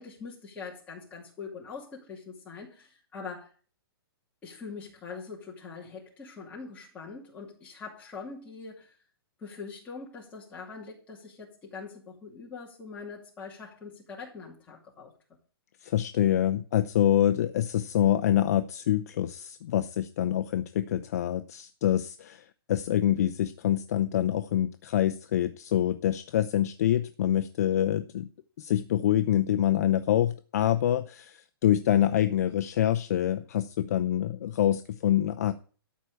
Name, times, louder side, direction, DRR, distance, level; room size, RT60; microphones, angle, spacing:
voice 1, 0.0-3.5 4.4-8.9 9.4-15.1, left 5 dB, 10° left, -3 dB, 2.7 m, -43 dB
voice 2, 15.8-22.4 22.7-28.3 28.6-35.5, left 11 dB, 40° left, 9 dB, 0.6 m, -26 dB
13.0 x 4.7 x 8.4 m, 0.40 s
hypercardioid pair, 170°, 13 cm